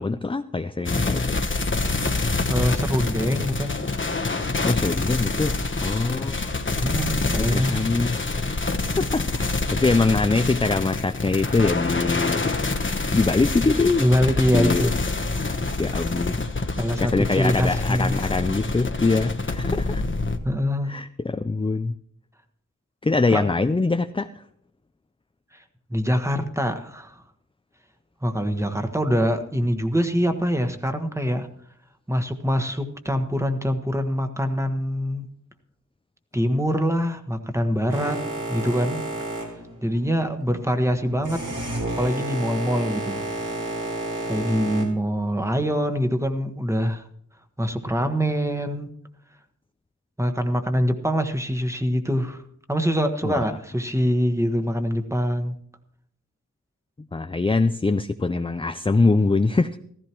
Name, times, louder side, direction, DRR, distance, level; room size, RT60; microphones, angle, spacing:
voice 1, 0.0-1.4 4.6-6.4 7.2-8.2 9.0-14.1 14.5-14.9 15.8-16.5 17.0-20.0 20.8-22.0 23.0-24.4 53.2-53.5 57.1-59.8, left 3 dB, 15° left, 10 dB, 0.4 m, -23 dB
sound 1, 0.9-20.4, left 3 dB, 40° left, 1.1 m, -26 dB
voice 2, 2.5-3.8 6.8-7.9 14.0-14.9 15.4-15.6 16.8-18.2 20.4-20.9 23.3-23.4 25.5-25.6 25.9-27.2 28.2-31.5 32.1-35.2 36.3-38.2 38.5-39.0 39.8-41.5 42.0-43.2 44.3-47.1 47.6-48.9 50.2-52.4 52.7-55.5, equal, 10° right, 6 dB, 1.4 m, -24 dB
Boat Water vehicle, 37.9-44.8, right 1 dB, 80° right, 4.1 m, -31 dB
15.0 x 15.0 x 3.0 m, 0.65 s
wide cardioid pair, 65°, 31 cm